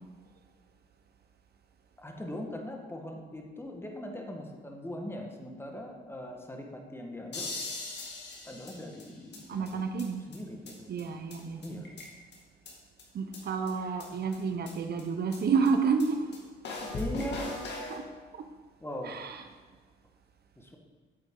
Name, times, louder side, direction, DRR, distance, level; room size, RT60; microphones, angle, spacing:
voice 1, 2.0-7.5 8.4-9.8 10.3-10.9 11.6-11.9 14.1-14.4 16.9-17.5 18.8-19.2 20.6-20.8, left 1 dB, 10° left, 1.4 m, -40 dB
sound 1, 7.3-9.4 9.7-9.8 10.0-10.1 10.3-10.4 10.7-10.8 11.0-11.1 11.3-11.4 11.6-12.4 12.7-12.8 13.0-13.1 13.3-13.4 13.7-13.8 14.0-14.1 14.3-14.4 14.7-14.8 15.0-15.1 15.3-15.4 15.7-15.8 16.0-16.1 16.3-16.4 16.6-18.0, left 2 dB, 60° left, 2.1 m, -39 dB
voice 2, 9.5-10.2 10.9-11.8 13.1-16.4 17.9-18.0 18.3-18.5 19.0-19.4, right 5 dB, 55° right, 0.7 m, -30 dB
8.7 x 8.0 x 3.7 m
cardioid pair, 90°, 20 cm